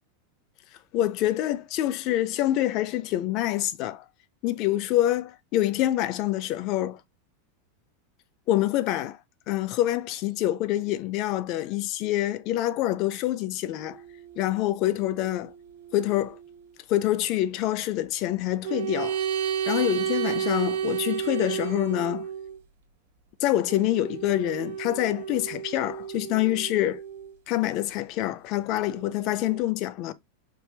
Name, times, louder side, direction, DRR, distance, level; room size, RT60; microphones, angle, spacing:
voice 1, 0.9-4.0 4.4-7.0 8.5-9.2 9.5-14.0 14.4-15.5 15.9-16.4 16.9-19.2 19.7-22.3 23.4-27.0 27.5-30.1, left 14 dB, 35° left, 0.3 m, -26 dB
sound 1, 13.8-16.6 18.6-22.6 23.7-27.4 28.9-29.6, right 8 dB, 70° right, 0.8 m, -33 dB
3.3 x 2.9 x 3.2 m
supercardioid pair, 175°, 0 cm